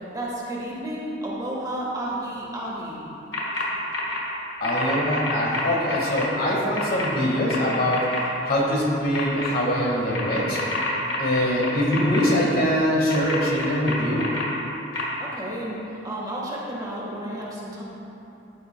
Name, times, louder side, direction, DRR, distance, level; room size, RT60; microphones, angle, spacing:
voice 1, 0.1-3.1 15.2-17.8, right 1 dB, 20° right, -5 dB, 1.4 m, -32 dB
sound 1, 3.3-3.6 3.9-4.2 4.6-6.2 6.7-7.1 7.5-8.2 9.1-9.5 10.1-12.2 13.1-14.4 14.9-15.0, left 2 dB, 85° left, 1.7 m, -28 dB
voice 2, 4.6-8.1 8.4-10.6 11.2-14.3, equal, 50° left, -3 dB, 1.7 m, -23 dB
11.0 x 9.9 x 2.3 m, 2.9 s
head